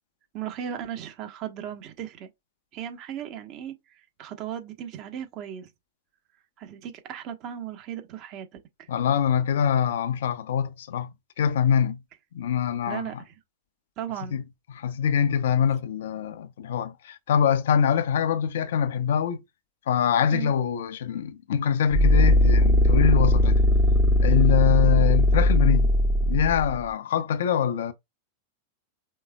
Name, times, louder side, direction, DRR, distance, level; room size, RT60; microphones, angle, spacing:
voice 1, 0.3-2.3 2.7-5.7 6.6-8.5 8.8-8.9 12.9-13.3 14.0-14.4 16.2-16.3 20.3-20.5, right 10 dB, 40° right, 1.2 m, -36 dB
voice 2, 8.9-11.1 11.4-12.0 12.3-13.1 14.3-14.4 14.7-19.4 19.9-23.6 24.2-25.9 26.2-27.9, left 7 dB, 60° left, 0.6 m, -24 dB
sound 1, 21.9-26.8, left 1 dB, 10° right, 0.8 m, -19 dB
5.3 x 3.6 x 2.4 m
figure-of-eight pair, 90°, 0 cm